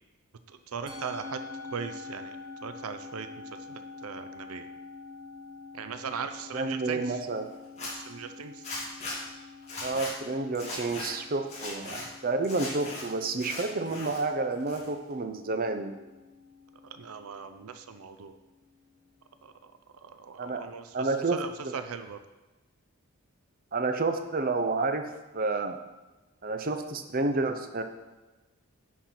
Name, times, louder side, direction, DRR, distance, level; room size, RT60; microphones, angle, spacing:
voice 1, 0.5-1.4 1.7-2.4 2.6-3.3 3.7-4.6 5.7-7.2 7.8-8.6 16.9-18.3 19.4-19.7 20.0-22.2, right 6 dB, 80° right, 9 dB, 0.5 m, -39 dB
Musical instrument, 0.9-19.4, left 4 dB, 20° right, 1.3 m, -47 dB
voice 2, 6.5-7.5 9.8-15.9 20.4-20.6 20.9-21.4 21.6-21.7 23.7-25.1 25.3-25.8 26.4-27.8, right 3 dB, 40° right, 7 dB, 0.7 m, -30 dB
Zipper (clothing), 7.6-7.9 8.6-9.2 9.6-10.1 10.5-11.1 11.5-12.0 12.4-13.0 13.4-14.2 14.5-15.1, left 2 dB, 30° left, 2.7 m, -38 dB
10.0 x 4.5 x 5.9 m, 1.1 s
head